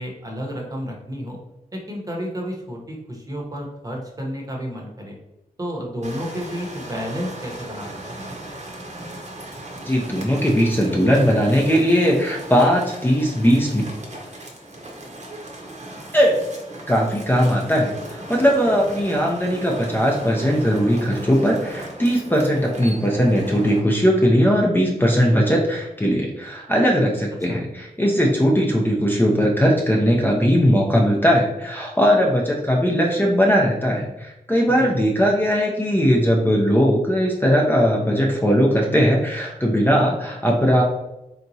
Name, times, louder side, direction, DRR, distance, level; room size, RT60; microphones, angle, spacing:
voice 1, 0.0-1.4 1.7-5.2 5.6-8.3 27.5-27.6 34.8-34.9, equal, 25° right, -1 dB, 0.9 m, -31 dB
sound 1, 6.0-23.8, right 1 dB, 50° right, 0.8 m, -37 dB
voice 2, 9.8-13.8 16.1-16.3 16.9-40.8, equal, 15° left, -2 dB, 0.5 m, -19 dB
3.5 x 2.9 x 2.7 m, 0.92 s
wide cardioid pair, 75°, 15 cm